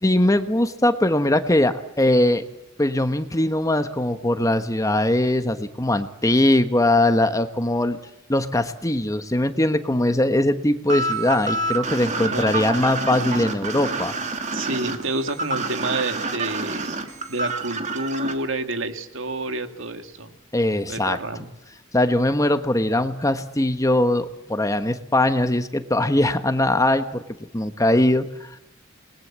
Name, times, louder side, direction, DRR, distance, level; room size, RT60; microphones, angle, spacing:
voice 1, 0.0-2.4 2.8-8.0 8.3-14.1 20.5-21.2 21.9-27.2 27.5-28.6, left 1 dB, 15° left, 9 dB, 1.3 m, -21 dB
sound 1, 10.9-18.3, right 2 dB, 35° right, 2.8 m, -27 dB
voice 2, 12.2-12.6 14.5-20.3 20.9-21.5, right 2 dB, 70° right, 7 dB, 2.4 m, -29 dB
28.5 x 21.5 x 7.6 m, 0.88 s
head